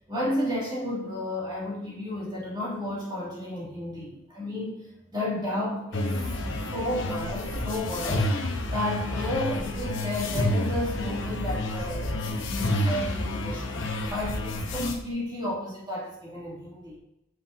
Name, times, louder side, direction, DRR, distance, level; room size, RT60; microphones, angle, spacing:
voice 1, 0.1-8.3 8.7-13.7 14.1-17.0, left 1 dB, 25° right, -6 dB, 1.7 m, -32 dB
sound 1, 5.9-15.0, left 1 dB, 85° left, 0.9 m, -29 dB
7.4 x 6.3 x 2.4 m, 0.87 s
head